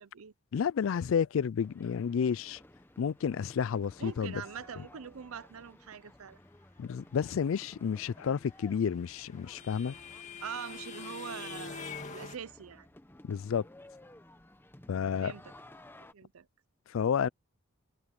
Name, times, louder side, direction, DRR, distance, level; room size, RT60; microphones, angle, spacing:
voice 1, 0.0-0.3 4.0-6.4 10.4-12.9 15.2-15.5 16.1-16.5, right 7 dB, 90° right, 0.6 m, -43 dB
voice 2, 0.5-2.6 3.0-4.4 6.8-9.9 13.2-13.6 14.9-15.3 16.9-17.3, left 7 dB, 70° left, 0.3 m, -30 dB
sound 1, 1.6-16.1, left 1 dB, 10° left, 1.0 m, -56 dB
sound 2, 8.5-12.4, left 5 dB, 35° left, 2.1 m, -44 dB
head